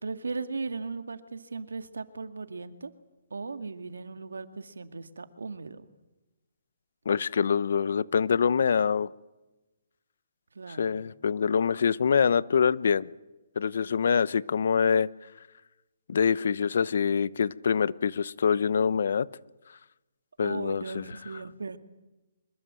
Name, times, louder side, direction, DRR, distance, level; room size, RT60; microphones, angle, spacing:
voice 1, 0.0-2.9 3.3-5.8 10.5-11.0 20.4-21.8, right 4 dB, 90° right, 9 dB, 2.2 m, -37 dB
voice 2, 7.0-9.1 10.7-13.1 13.6-15.1 16.1-19.3 20.4-21.0, left 6 dB, 65° left, 19 dB, 0.9 m, -25 dB
25.0 x 22.0 x 7.7 m, 1.1 s
hypercardioid pair, 150°, 0 cm